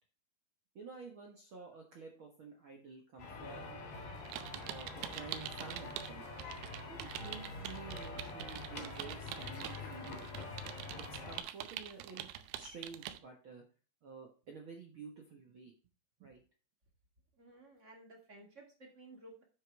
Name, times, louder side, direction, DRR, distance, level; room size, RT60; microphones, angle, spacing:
voice 1, 0.7-3.8 4.7-6.3 6.8-10.3 11.2-12.3 12.5-13.6 14.0-15.7 16.2-16.4, right 5 dB, 70° right, 1 dB, 1.2 m, -51 dB
sound 1, 3.2-11.4, left 3 dB, 80° left, 4.8 m, -45 dB
sound 2, 4.2-6.1 6.4-13.2, right 12 dB, 90° right, 2.7 m, -45 dB
voice 2, 17.3-19.4, right 2 dB, 25° right, 0 dB, 1.9 m, -56 dB
9.8 x 5.6 x 4.6 m, 0.36 s
omnidirectional pair, 4.5 m